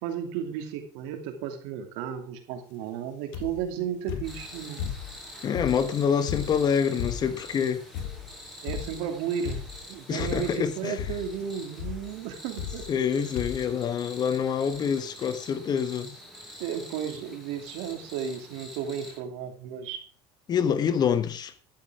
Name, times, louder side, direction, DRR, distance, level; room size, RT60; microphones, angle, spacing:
voice 1, 0.0-4.8 8.6-12.9 16.6-20.0, right 8 dB, 80° right, 2.6 m, -34 dB
sound 1, 3.3-3.7 4.1-5.2 5.5-7.5 7.9-8.4 8.7-9.1 9.5-9.9 10.2-10.7 11.0-11.4 11.8-12.1 12.6-13.1 13.4-13.7 14.4-14.5 14.7-14.8, left 8 dB, 85° left, 1.9 m, -35 dB
sound 2, 4.2-19.2, equal, ahead, 6.5 m, -46 dB
voice 2, 5.4-7.8 10.1-11.0 12.9-16.1 20.5-21.5, left 7 dB, 35° left, 1.3 m, -26 dB
12.0 x 8.8 x 4.8 m
supercardioid pair, 120°, 11 cm